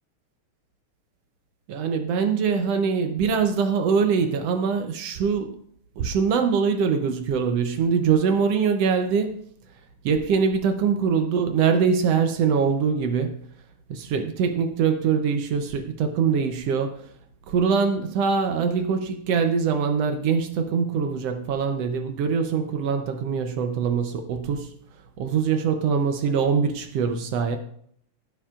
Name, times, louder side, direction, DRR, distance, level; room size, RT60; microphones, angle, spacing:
voice 1, 1.7-5.6 6.0-9.4 10.0-13.4 13.9-17.0 17.5-24.7 25.2-27.6, right 6 dB, 75° right, 7 dB, 1.5 m, -23 dB
17.0 x 7.3 x 2.4 m, 0.66 s
omnidirectional pair, 3.5 m